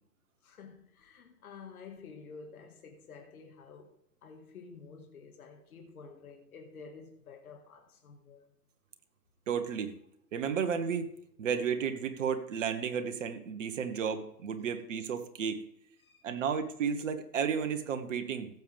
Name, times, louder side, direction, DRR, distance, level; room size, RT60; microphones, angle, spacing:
voice 1, 0.4-3.9 4.2-8.5 16.0-16.2, left 5 dB, 60° left, 1.9 m, -50 dB
voice 2, 9.5-9.9 10.3-11.1 11.4-15.6 16.2-18.5, right 7 dB, 50° right, 1.4 m, -32 dB
15.5 x 7.4 x 3.5 m
hypercardioid pair, 140°, 48 cm